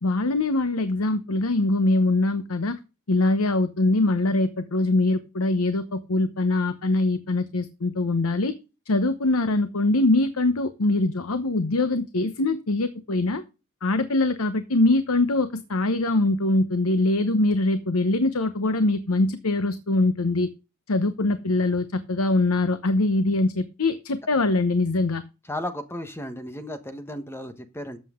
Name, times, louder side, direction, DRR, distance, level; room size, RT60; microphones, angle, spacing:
voice 1, 0.0-2.8 3.1-8.5 8.9-13.4 13.8-20.5 20.9-25.2, left 2 dB, 80° left, 11 dB, 0.9 m, -23 dB
voice 2, 25.5-28.0, left 1 dB, 10° left, 9 dB, 1.2 m, -34 dB
13.5 x 7.6 x 3.7 m, 0.31 s
head